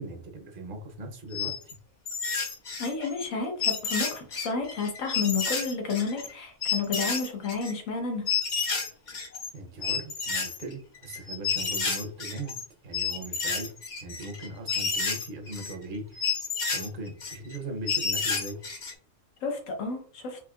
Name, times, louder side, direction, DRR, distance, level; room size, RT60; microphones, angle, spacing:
voice 1, 0.0-1.8 9.5-12.6 12.8-13.7 14.0-16.3 16.7-18.6, right 2 dB, 45° right, 3 dB, 0.8 m, -39 dB
sound 1, 1.3-1.7 2.1-3.2 3.6-6.3 6.6-7.7 8.3-9.5 9.8-12.6 12.9-15.7 16.1-17.6 17.9-18.9, left 5 dB, 45° left, 0.6 m, -30 dB
voice 2, 2.8-8.3 19.4-20.4, left 4 dB, 85° left, 2 dB, 1.4 m, -31 dB
4.7 x 2.7 x 2.3 m, 0.43 s
omnidirectional pair, 1.3 m